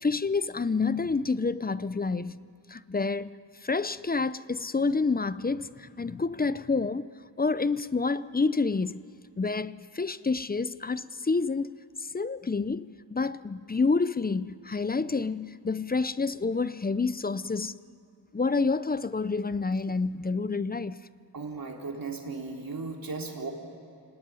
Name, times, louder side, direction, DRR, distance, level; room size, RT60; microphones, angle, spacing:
voice 1, 0.0-3.4 3.6-7.1 7.4-9.0 9.4-11.7 12.0-17.8 18.3-21.0, left 4 dB, 20° left, 0.6 m, -28 dB
voice 2, 21.3-23.5, right 4 dB, 45° right, 4.2 m, -36 dB
30.0 x 18.5 x 9.8 m
cardioid pair, 80°, 46 cm